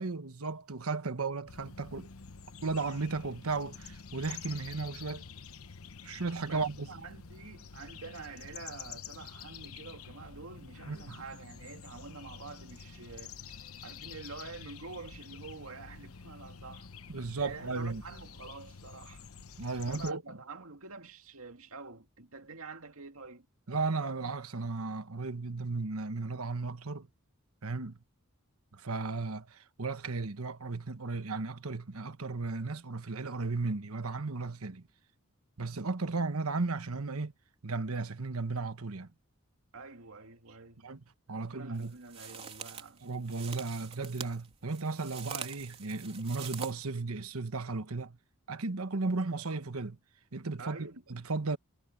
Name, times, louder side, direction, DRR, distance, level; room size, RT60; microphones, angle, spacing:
voice 1, 0.0-2.1 2.6-5.2 6.0-6.9 10.8-11.2 17.1-18.0 19.6-20.2 23.7-27.1 27.6-28.0 28.7-34.8 35.6-37.3 37.6-39.1 40.8-41.0 41.3-41.9 43.0-48.2 48.5-50.0 50.3-51.6, right 3 dB, 90° right, 1.2 m, -35 dB
sound 1, 1.5-20.1, left 6 dB, 80° left, 1.0 m, -48 dB
voice 2, 6.4-13.6 13.8-16.9 17.4-19.2 19.8-23.5 39.7-40.9 41.4-43.0 50.6-51.0, right 4 dB, 75° right, 2.2 m, -47 dB
sound 2, 41.7-46.7, right 6 dB, 30° right, 3.4 m, -45 dB
head